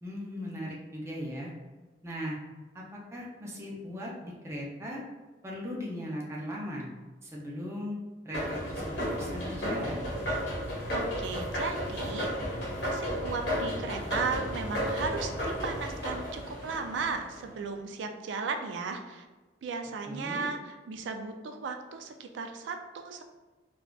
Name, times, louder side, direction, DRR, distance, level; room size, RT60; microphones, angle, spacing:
voice 1, 0.0-1.5 2.0-2.4 2.7-2.8 3.1-5.0 5.4-6.9 7.2-8.0 8.2-10.0 20.1-20.4, equal, 15° right, -4 dB, 0.5 m, -38 dB
sound 1, 8.3-17.4, equal, 75° left, 1.1 m, -33 dB
voice 2, 10.9-19.2 19.6-23.2, right 4 dB, 80° right, 5 dB, 0.3 m, -36 dB
3.6 x 2.3 x 2.3 m, 1.2 s
head